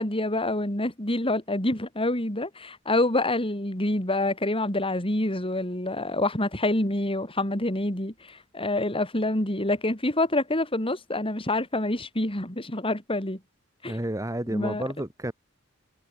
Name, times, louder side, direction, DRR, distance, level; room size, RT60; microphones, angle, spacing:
voice 1, 0.0-13.4 13.8-14.0 14.5-14.8, left 1 dB, 25° left, 4.6 m, -27 dB
voice 2, 13.8-15.3, right 1 dB, 15° right, 2.3 m, -31 dB
head